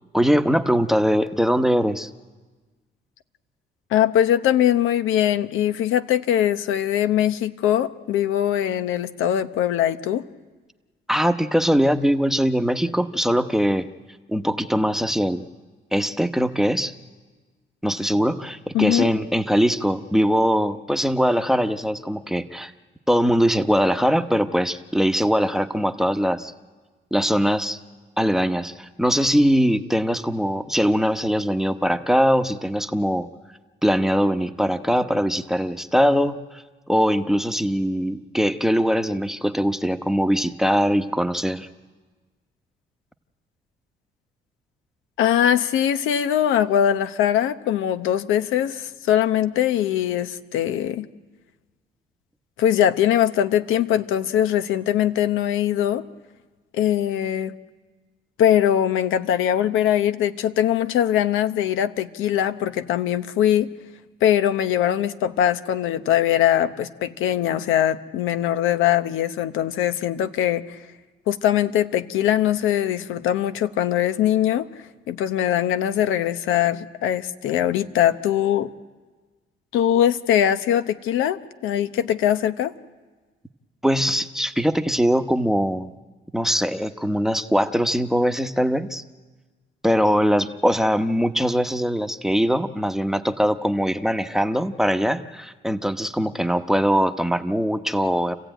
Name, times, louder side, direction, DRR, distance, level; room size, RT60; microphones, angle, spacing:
voice 1, 0.1-2.1 11.1-13.9 14.3-15.4 15.9-16.9 17.8-22.7 23.1-26.5 27.1-27.8 28.2-33.3 33.8-36.6 36.9-41.7 83.8-85.9 86.3-89.0 89.8-98.4, equal, ahead, 9 dB, 1.0 m, -21 dB
voice 2, 3.9-10.2 18.7-19.1 45.2-51.1 52.6-56.1 56.7-57.5 58.4-63.7 64.2-70.8 71.3-74.7 75.1-78.7 79.7-82.7, left 10 dB, 90° left, 11 dB, 0.9 m, -21 dB
28.0 x 15.0 x 9.1 m, 1.3 s
cardioid pair, 90°, 20 cm